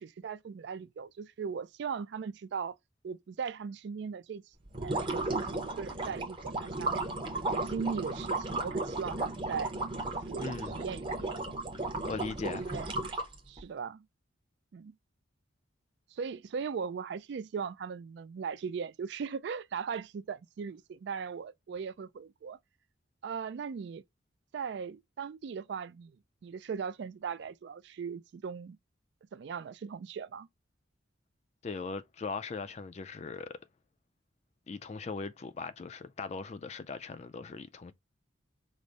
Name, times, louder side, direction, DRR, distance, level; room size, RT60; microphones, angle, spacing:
voice 1, 0.0-2.8 3.0-4.4 4.8-7.0 7.5-9.7 10.3-11.5 11.9-12.1 12.5-12.9 13.5-14.1 14.7-14.9 16.1-22.6 23.2-24.0 24.5-26.2 26.4-28.8 29.3-30.5, right 6 dB, 60° right, 0.3 m, -38 dB
sound 1, 4.7-13.6, right 2 dB, 25° right, 0.7 m, -34 dB
voice 2, 10.4-10.8 12.0-12.7 31.6-33.6 34.7-37.9, left 4 dB, 35° left, 0.3 m, -39 dB
5.0 x 2.0 x 4.0 m
head